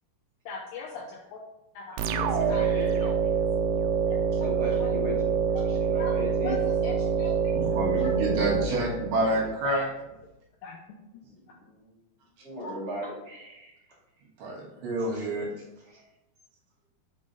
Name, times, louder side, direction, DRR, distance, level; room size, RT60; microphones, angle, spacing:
voice 1, 0.5-1.4 1.8-3.1 4.1-4.2 6.0-6.2 6.4-6.6 6.8-7.5 8.0-8.1 9.6-9.8 10.6-10.8 12.6-12.7, left 3 dB, 80° left, 0 dB, 2.1 m, -40 dB
voice 2, 1.9-3.0 4.3-5.1 5.6-6.9 11.2-11.9 12.4-13.7 15.1-15.2 15.6-16.0, left 1 dB, 5° left, -7 dB, 0.5 m, -38 dB
sound 1, 2.0-9.5, right 6 dB, 85° right, 2.5 m, -26 dB
voice 3, 7.5-9.9 14.4-15.5, right 1 dB, 65° right, -5 dB, 3.0 m, -28 dB
7.7 x 3.7 x 3.8 m, 0.94 s
omnidirectional pair, 4.7 m